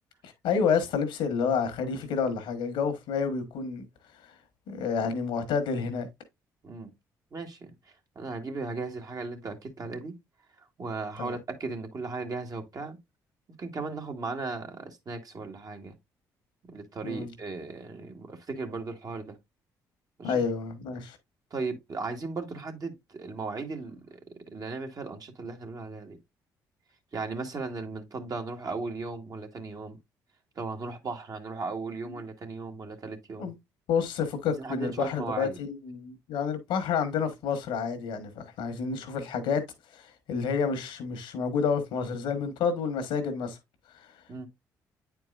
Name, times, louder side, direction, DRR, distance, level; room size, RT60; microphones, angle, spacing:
voice 1, 0.2-3.8 4.2-4.3 4.7-6.1 11.2-11.4 17.0-17.3 20.2-21.2 33.4-33.5 33.9-39.6 39.9-43.6 43.9-44.1, left 6 dB, 80° left, 1.4 m, -29 dB
voice 2, 7.3-10.1 10.6-13.0 13.6-15.9 16.7-19.4 20.2-20.4 21.5-24.2 24.5-26.2 27.1-30.0 30.5-33.5 34.6-35.6 44.3-44.5, right 3 dB, 45° right, 1.5 m, -36 dB
8.8 x 4.6 x 2.4 m
supercardioid pair, 60°, 8 cm